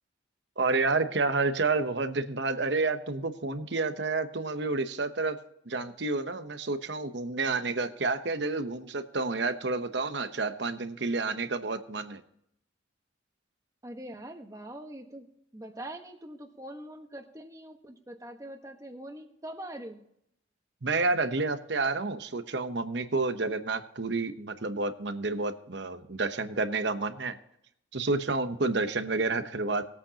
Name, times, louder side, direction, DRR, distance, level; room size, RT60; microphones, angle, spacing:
voice 1, 0.6-5.4 5.7-12.2 20.8-27.3 27.9-29.8, right 3 dB, 65° right, 10 dB, 0.9 m, -29 dB
voice 2, 13.8-15.3 15.5-20.0, right 1 dB, 15° right, 4 dB, 1.3 m, -43 dB
20.5 x 8.4 x 2.9 m, 0.74 s
head